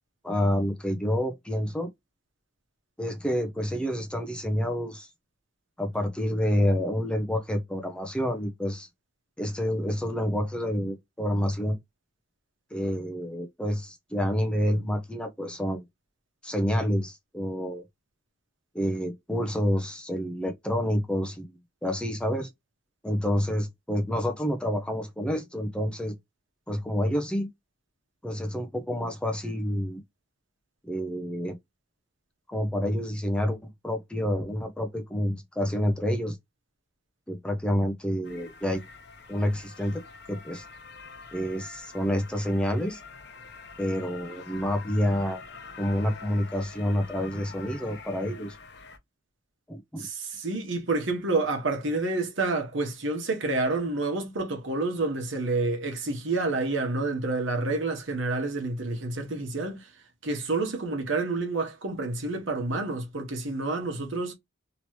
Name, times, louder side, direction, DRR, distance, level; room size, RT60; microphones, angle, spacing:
voice 1, 0.2-1.9 3.0-5.1 5.8-8.9 9.4-11.8 12.7-15.8 16.4-17.8 18.7-21.5 21.8-22.5 23.0-26.1 26.7-27.5 28.2-30.0 30.8-31.6 32.5-33.6 33.8-36.4 37.3-38.8 39.3-40.0 40.3-40.6 41.3-43.0 43.8-45.4 45.8-48.6 49.7-50.1, equal, 5° left, 0.5 m, -28 dB
sound 1, 38.2-49.0, left 5 dB, 55° left, 0.7 m, -46 dB
voice 2, 50.0-59.9 60.2-64.3, right 3 dB, 70° right, 1.1 m, -29 dB
3.0 x 2.8 x 3.1 m
head